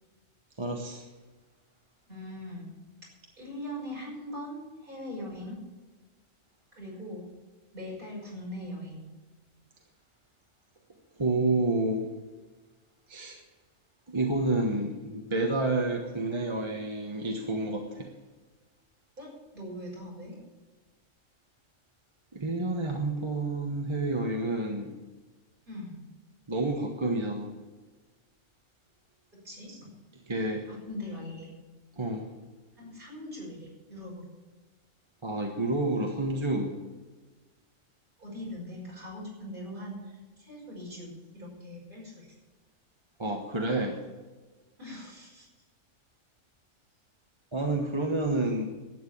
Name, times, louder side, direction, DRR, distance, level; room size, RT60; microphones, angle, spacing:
voice 1, 0.6-1.0 11.2-12.1 13.1-13.4 14.1-18.1 22.3-24.9 26.5-27.5 29.7-29.8 30.3-30.7 32.0-32.3 35.2-36.8 43.2-44.0 47.5-48.7, right 2 dB, 25° right, 2 dB, 1.2 m, -29 dB
voice 2, 2.1-2.7 3.4-5.6 6.8-7.2 7.7-9.0 19.2-20.4 25.7-26.0 29.4-29.9 30.7-31.5 32.8-34.3 38.2-42.3 44.8-45.5, left 1 dB, 40° right, -4 dB, 6.0 m, -41 dB
12.0 x 9.2 x 8.6 m, 1.3 s
omnidirectional pair, 1.4 m